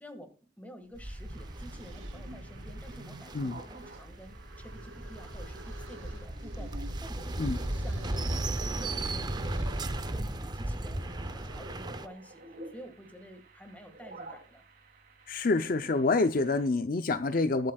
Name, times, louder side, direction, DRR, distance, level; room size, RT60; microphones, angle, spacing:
voice 1, 0.0-14.6, equal, 10° left, 1.8 m, -50 dB
sound 1, 0.9-1.0 1.3-12.1, right 2 dB, 90° right, 2.6 m, -49 dB
sound 2, 1.0-12.1, right 1 dB, 20° right, 0.6 m, -36 dB
sound 3, 1.0-16.7, right 2 dB, 45° right, 3.0 m, -53 dB
voice 2, 15.3-17.7, left 3 dB, 45° left, 0.5 m, -27 dB
21.5 x 7.7 x 2.3 m
head